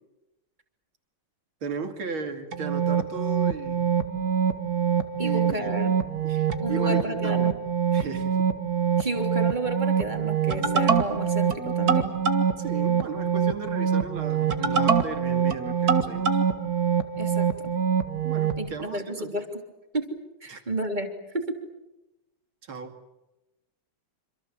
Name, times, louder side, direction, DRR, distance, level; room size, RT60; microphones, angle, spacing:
voice 1, 1.6-3.9 5.2-5.7 6.2-7.5 7.9-8.5 12.6-16.4 18.2-19.4 20.5-20.6 22.6-23.0, right 5 dB, 80° right, 6 dB, 3.4 m, -36 dB
sound 1, 2.5-18.6, right 7 dB, 50° right, 2.1 m, -25 dB
voice 2, 5.2-6.0 6.6-7.5 9.0-12.1 17.2-17.7 18.6-19.6 19.9-20.1 20.4-21.6, right 1 dB, 20° right, 4 dB, 3.4 m, -31 dB
27.0 x 26.5 x 7.6 m, 0.97 s
omnidirectional pair, 2.2 m